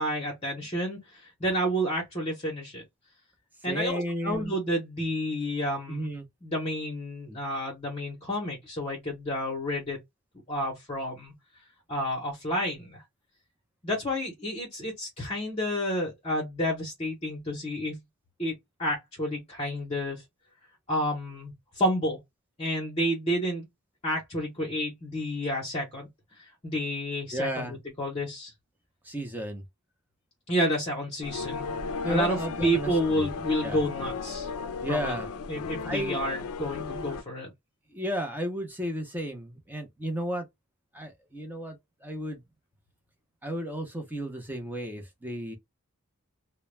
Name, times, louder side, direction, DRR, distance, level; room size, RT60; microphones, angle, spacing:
voice 1, 0.0-2.8 3.6-6.1 6.4-10.0 10.5-11.3 11.9-13.0 13.8-18.0 18.4-20.2 20.9-22.2 22.6-23.7 24.0-26.1 26.6-28.5 30.5-31.7 32.1-34.5 34.9-35.2 35.5-37.5, equal, 25° left, 0.7 m, -30 dB
voice 2, 3.7-4.5 5.9-6.3 27.3-27.8 29.0-29.6 32.0-33.3 33.6-33.8 34.8-35.3 35.8-36.3 37.9-40.5 40.9-42.4 43.4-45.6, equal, 10° right, 0.6 m, -33 dB
sound 1, 31.2-37.2, left 4 dB, 75° left, 0.4 m, -35 dB
2.2 x 2.0 x 3.1 m
head